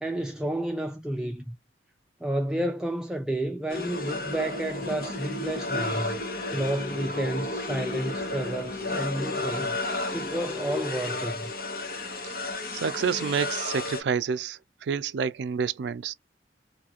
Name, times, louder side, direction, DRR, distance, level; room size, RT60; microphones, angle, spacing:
voice 1, 0.0-1.6 2.2-6.2 6.5-9.8 10.1-11.5, right 1 dB, 5° right, 0.4 m, -31 dB
sound 1, 3.7-14.0, left 2 dB, 55° left, 0.8 m, -32 dB
voice 2, 12.7-16.1, right 6 dB, 80° right, 0.4 m, -29 dB
2.6 x 2.4 x 2.9 m
head